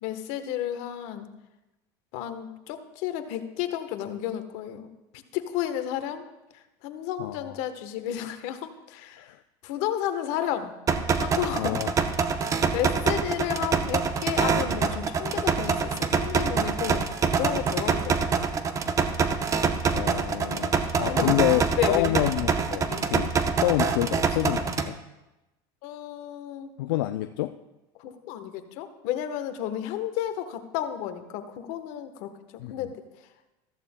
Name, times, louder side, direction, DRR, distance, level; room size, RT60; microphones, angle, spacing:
voice 1, 0.0-1.3 2.1-4.9 5.3-6.2 6.8-9.3 9.6-10.7 11.2-11.8 12.3-17.1 17.3-18.5 21.1-22.1 22.9-23.1 25.8-26.7 28.0-32.4 32.7-33.0, left 11 dB, 65° left, 9 dB, 1.1 m, -32 dB
voice 2, 7.2-7.6 9.2-9.4 11.5-11.9 19.9-21.6 21.9-23.3 23.6-25.0 26.8-27.6 32.6-32.7, left 16 dB, 90° left, 8 dB, 0.4 m, -28 dB
sound 1, 10.9-24.9, right 5 dB, 30° right, 0.7 m, -25 dB
14.0 x 14.0 x 2.2 m, 1.0 s
supercardioid pair, 120°, 12 cm